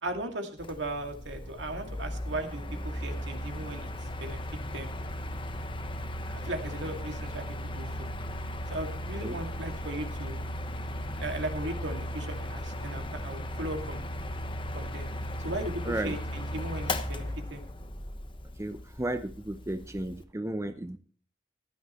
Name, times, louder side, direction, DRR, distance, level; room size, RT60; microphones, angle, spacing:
voice 1, 0.0-4.9 6.3-8.1 8.7-10.4 11.0-14.1 14.7-15.1 15.4-17.6, right 1 dB, 75° right, 4 dB, 2.3 m, -37 dB
Mechanical fan, 0.6-20.2, left 1 dB, 30° left, 1.1 m, -36 dB
voice 2, 15.9-16.2 18.6-21.0, right 1 dB, 15° right, 9 dB, 0.6 m, -34 dB
15.5 x 11.5 x 3.1 m, 0.44 s
head